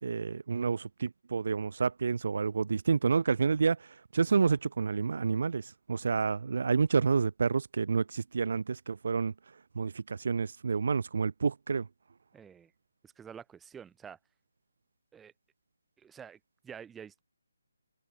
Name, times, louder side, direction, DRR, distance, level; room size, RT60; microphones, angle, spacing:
voice 1, 0.0-3.9 4.1-9.3 9.7-11.9, right 5 dB, 50° right, 5.0 m, -29 dB
voice 2, 12.3-12.7 13.0-14.2 15.1-15.3 16.0-17.2, right 7 dB, 5° right, 6.4 m, -48 dB
open air
hypercardioid pair, 175°, 0 cm